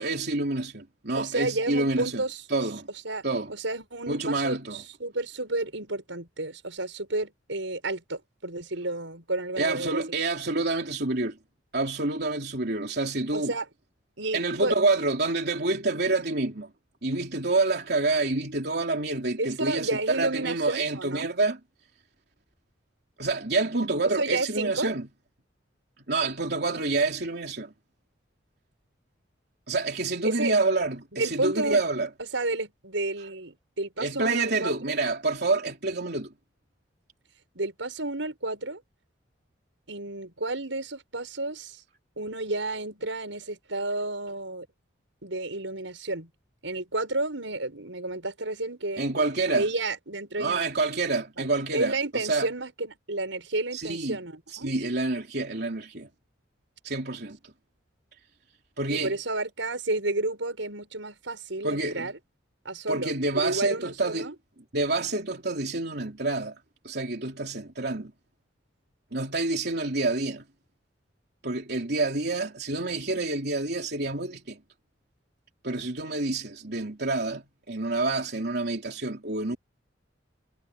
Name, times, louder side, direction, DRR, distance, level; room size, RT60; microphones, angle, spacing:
voice 1, 0.0-2.2 2.5-2.9 3.2-3.5 4.1-4.8 9.6-11.4 11.7-13.5 14.3-16.7 17.0-21.6 23.2-25.1 26.1-27.7 29.7-32.1 34.0-36.3 49.0-49.7 50.4-52.5 53.7-54.2 54.5-56.1 56.8-57.5 58.8-59.1 61.6-62.1 62.9-64.3 64.7-66.6 66.8-68.1 69.1-70.4 71.4-74.6 75.6-79.6, right 3 dB, 55° right, 3.4 m, -28 dB
voice 2, 1.2-2.4 3.0-3.2 3.5-10.0 13.3-13.7 14.2-14.8 19.4-21.3 24.2-24.9 30.2-30.5 31.1-31.8 32.3-35.0 37.5-38.8 39.9-41.8 42.2-44.7 45.2-46.3 46.6-49.0 49.5-50.6 51.7-54.7 58.9-62.2 62.6-64.3, right 2 dB, 85° right, 5.9 m, -31 dB
head